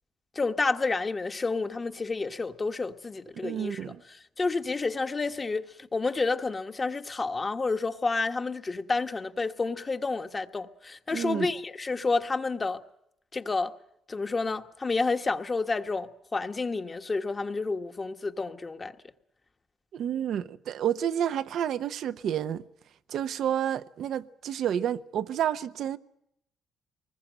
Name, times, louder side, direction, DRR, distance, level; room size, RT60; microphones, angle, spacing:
voice 1, 0.3-12.8 13.3-13.7 14.1-18.9, left 3 dB, 30° left, 1.4 m, -30 dB
voice 2, 3.4-4.0 11.1-11.5 19.9-22.6 23.1-26.0, right 10 dB, 70° right, 0.9 m, -30 dB
24.0 x 20.5 x 7.7 m
cardioid pair, 90°, 0 cm